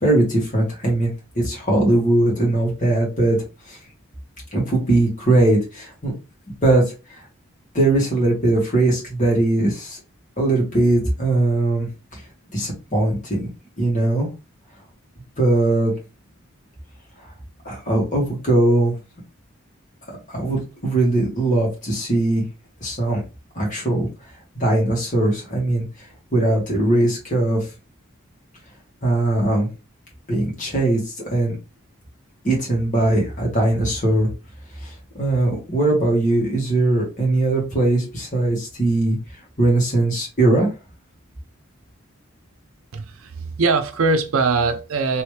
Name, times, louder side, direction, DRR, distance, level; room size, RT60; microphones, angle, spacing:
voice 1, 0.0-3.4 3.7-3.8 4.5-6.1 6.6-6.8 7.1-7.2 7.7-10.0 10.4-12.2 12.5-13.5 13.8-14.3 15.4-15.9 17.6-18.9 20.3-22.4 22.8-23.2 23.6-24.1 24.6-25.9 26.3-27.7 29.0-29.7 30.3-31.0 31.3-31.6 32.4-34.3 34.8-39.2 39.6-40.7, right 2 dB, 35° left, 1.7 m, -20 dB
voice 2, 42.9-45.2, right 3 dB, 80° right, 0.6 m, -21 dB
3.1 x 3.1 x 3.2 m
head